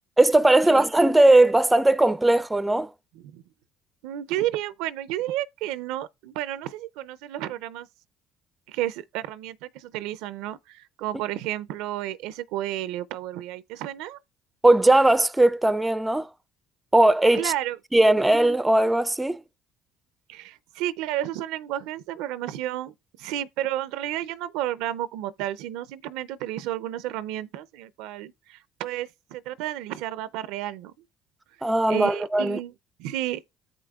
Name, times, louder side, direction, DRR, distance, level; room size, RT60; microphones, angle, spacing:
voice 1, 0.2-2.9 14.6-16.3 16.9-17.5 17.9-19.4 31.6-32.6, right 2 dB, 10° right, 0.4 m, -19 dB
voice 2, 4.0-7.9 8.7-14.2 17.3-17.8 20.3-30.9 31.9-32.7 33.0-33.4, right 13 dB, 75° right, 0.4 m, -32 dB
13.5 x 5.1 x 2.3 m
supercardioid pair, 75°, 0 cm